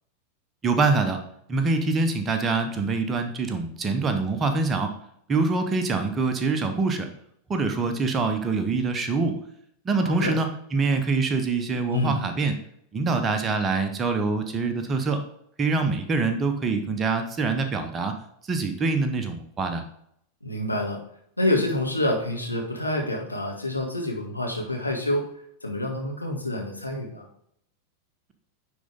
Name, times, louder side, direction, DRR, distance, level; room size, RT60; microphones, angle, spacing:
voice 1, 0.6-1.2 1.5-4.9 5.3-7.1 7.5-9.4 9.8-12.6 12.9-15.2 15.6-18.1 18.5-19.8, right 3 dB, 20° right, 6 dB, 1.0 m, -25 dB
voice 2, 10.0-10.4 11.9-12.3 20.4-21.0 21.4-25.2 25.6-27.3, left 1 dB, 85° left, -1 dB, 1.7 m, -27 dB
9.8 x 4.0 x 3.7 m, 0.70 s
figure-of-eight pair, 90°, 0 cm